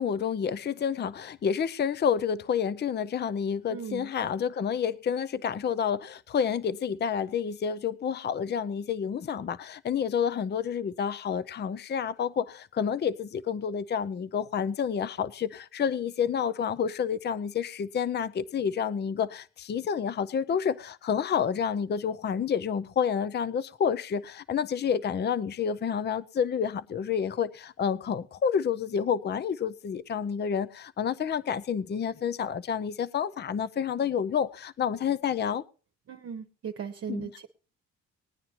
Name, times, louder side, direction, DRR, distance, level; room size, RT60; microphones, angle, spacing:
voice 1, 0.0-35.6 37.1-37.3, left 7 dB, 35° left, 0.6 m, -29 dB
voice 2, 3.7-4.1 36.1-37.5, right 7 dB, 50° right, 1.0 m, -38 dB
20.0 x 9.4 x 2.9 m
cardioid pair, 90°, 30 cm